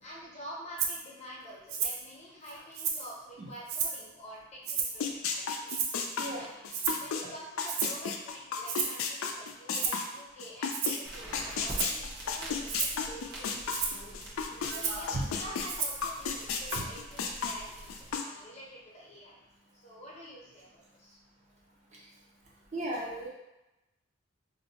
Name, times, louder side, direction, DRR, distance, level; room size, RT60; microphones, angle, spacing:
voice 1, 0.0-5.7 6.4-6.7 7.0-13.3 13.9-14.2 14.6-19.4 19.7-21.2, equal, 30° left, -5 dB, 0.8 m, -48 dB
Rattle (instrument), 0.8-1.0 1.7-2.0 2.5-3.1 3.7-4.1 4.6-5.1 5.7-6.1 6.7-7.1 7.7-8.0 8.7-9.0 9.7-10.0 10.7-11.1 11.7-12.0 12.7-13.0 13.7-14.0 14.7-15.1 15.7-16.1 16.7-16.8, right 6 dB, 85° right, 0.4 m, -33 dB
sound 1, 5.0-11.0 11.3-14.7 15.1-18.2, left 6 dB, 80° left, 0.4 m, -33 dB
voice 2, 6.9-7.3 13.1-13.2 13.4-13.6 13.9-14.1 14.5-15.2 22.7-23.3, right 1 dB, 35° right, -4 dB, 0.5 m, -38 dB
sound 2, 11.0-18.2, right 1 dB, 55° right, 0.9 m, -46 dB
2.6 x 2.2 x 4.0 m, 0.97 s
head